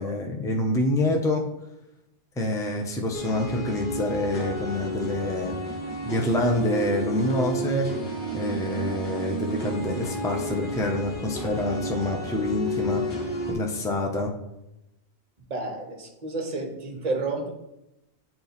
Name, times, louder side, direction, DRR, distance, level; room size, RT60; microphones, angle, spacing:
voice 1, 0.0-1.4 2.4-5.6 6.0-7.9 8.3-13.0 13.5-14.3, left 1 dB, 5° left, 1 dB, 0.4 m, -26 dB
sound 1, 3.1-13.5, right 1 dB, 50° left, 1.3 m, -32 dB
voice 2, 15.5-17.5, right 3 dB, 40° right, 3 dB, 1.0 m, -31 dB
8.5 x 2.8 x 4.0 m, 0.90 s
omnidirectional pair, 1.2 m